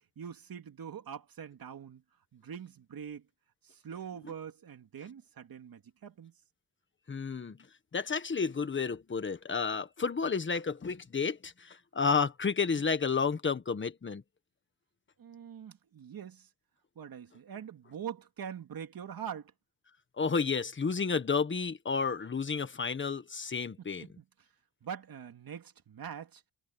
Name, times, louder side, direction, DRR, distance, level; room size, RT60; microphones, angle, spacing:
voice 1, 0.2-2.0 2.3-3.3 3.6-6.3 12.7-12.8 15.2-16.5 17.0-19.5 23.8-23.9 24.2-24.3 24.8-26.4, right 8 dB, 60° right, 2.9 m, -43 dB
voice 2, 7.1-7.6 7.9-14.2 20.2-24.0, left 5 dB, 30° left, 1.5 m, -31 dB
wide cardioid pair, 150°, 40 cm